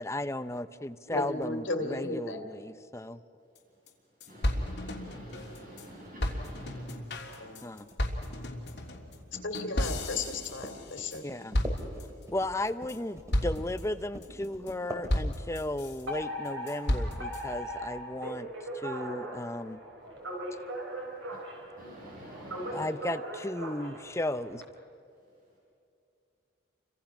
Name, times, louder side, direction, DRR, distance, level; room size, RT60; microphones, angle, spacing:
voice 1, 0.0-3.2 7.6-7.9 11.2-11.6 12.3-19.8 22.7-24.6, left 1 dB, 15° left, 11 dB, 0.6 m, -35 dB
voice 2, 1.1-2.5 7.4-7.5 9.4-11.2, left 2 dB, 85° left, 6 dB, 2.7 m, -34 dB
sound 1, 3.6-3.7 3.9-4.0 4.2-5.9 6.2-11.2 11.5-12.2 12.7-13.0 13.3-13.8 14.2-14.7 15.1-16.0 16.5-17.4, left 1 dB, 60° left, 3.2 m, -33 dB
voice 3, 3.6-6.9 12.1-12.3 20.3-21.5 21.7-22.9 25.3-25.6, equal, 45° right, -5 dB, 6.7 m, -51 dB
sound 2, 4.7-15.7, right 1 dB, 15° right, 2.7 m, -45 dB
Alarm, 16.1-24.6, right 1 dB, 85° right, 4.2 m, -39 dB
30.0 x 25.5 x 6.0 m, 2.6 s
head